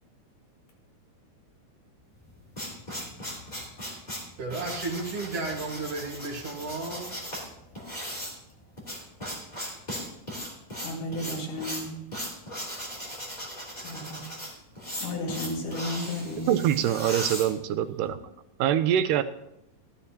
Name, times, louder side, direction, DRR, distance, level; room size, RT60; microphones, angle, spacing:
sound 1, 2.2-18.1, equal, 15° left, 2.8 m, -38 dB
voice 1, 4.4-7.1, right 3 dB, 55° right, 2.5 m, -33 dB
voice 2, 10.8-12.0 13.8-14.2 15.0-16.8, left 1 dB, 80° left, 3.7 m, -33 dB
voice 3, 16.5-18.2 18.6-19.2, right 10 dB, 85° right, 2.1 m, -24 dB
13.5 x 13.0 x 2.8 m
omnidirectional pair, 3.8 m